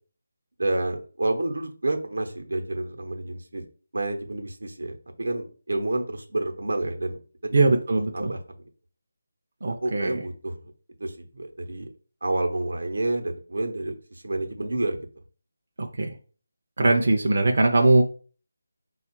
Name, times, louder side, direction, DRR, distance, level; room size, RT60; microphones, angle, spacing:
voice 1, 0.6-3.6 3.9-7.5 8.1-8.7 9.7-10.5 11.0-11.9 12.2-15.0, right 2 dB, 85° right, 4 dB, 0.8 m, -29 dB
voice 2, 7.5-8.3 9.6-10.2 15.8-16.1 16.8-18.0, right 2 dB, 45° right, 3 dB, 0.4 m, -21 dB
3.7 x 2.3 x 4.4 m, 0.39 s
figure-of-eight pair, 175°, 0 cm